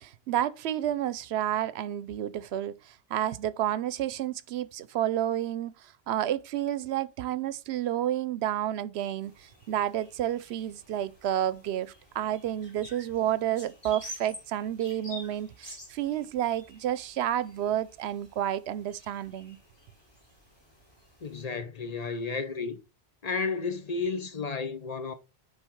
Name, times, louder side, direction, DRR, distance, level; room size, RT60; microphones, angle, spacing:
voice 1, 0.0-19.6, right 11 dB, 85° right, 0.8 m, -30 dB
sound 1, 9.2-21.4, equal, 25° left, 3.3 m, -50 dB
voice 2, 21.2-22.8 23.2-25.1, left 4 dB, 40° left, 0.8 m, -32 dB
9.9 x 3.8 x 4.6 m
omnidirectional pair, 1.1 m